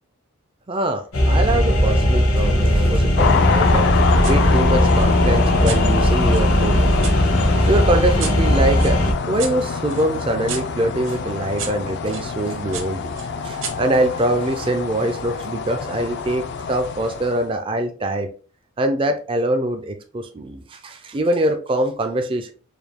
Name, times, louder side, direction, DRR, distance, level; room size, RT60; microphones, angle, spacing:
voice 1, 0.7-7.0 7.4-9.0 9.3-13.1 13.4-18.3 18.8-22.5, right 1 dB, 25° right, 5 dB, 0.4 m, -23 dB
sound 1, 1.1-9.1, equal, 80° left, 1.3 m, -18 dB
sound 2, 3.2-17.5, left 5 dB, 50° left, 0.4 m, -25 dB
sound 3, 4.2-4.4 4.9-7.2 7.6-12.3 12.7-14.6, right 7 dB, 55° right, 0.8 m, -35 dB
4.8 x 2.3 x 3.5 m, 0.38 s
head